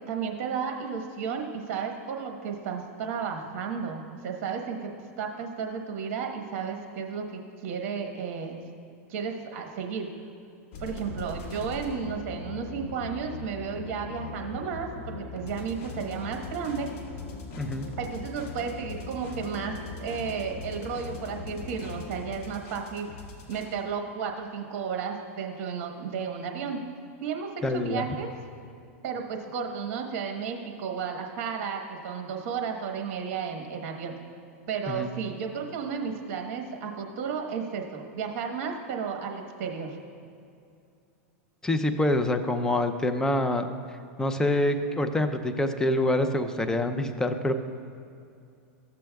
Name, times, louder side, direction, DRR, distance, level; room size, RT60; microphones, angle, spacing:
voice 1, 0.0-4.9 5.2-8.6 9.1-10.1 10.8-16.9 18.0-23.1 23.5-26.8 27.2-28.3 29.0-34.2 34.7-40.0, right 6 dB, 55° right, 3 dB, 1.2 m, -33 dB
sound 1, 10.7-23.7, left 4 dB, 45° left, 1.6 m, -40 dB
voice 2, 27.6-28.0 34.9-35.1 41.6-43.7 44.2-47.5, left 1 dB, 10° left, 7 dB, 0.5 m, -26 dB
14.0 x 7.5 x 2.3 m, 2.5 s
supercardioid pair, 130°, 8 cm